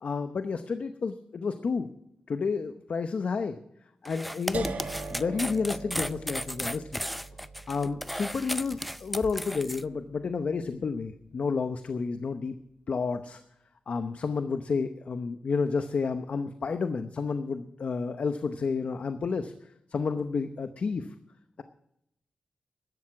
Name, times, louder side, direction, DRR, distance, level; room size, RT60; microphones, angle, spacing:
voice 1, 0.0-1.9 2.3-3.6 4.0-4.7 5.1-7.0 7.7-12.5 12.9-13.4 13.9-19.5 19.9-21.1, left 5 dB, 55° left, 9 dB, 0.8 m, -30 dB
sound 1, 4.0-9.8, equal, ahead, 0.4 m, -35 dB
sound 2, 4.5-10.5, right 3 dB, 75° right, 1.8 m, -41 dB
14.0 x 12.0 x 6.0 m, 0.77 s
wide cardioid pair, 120°, 3 cm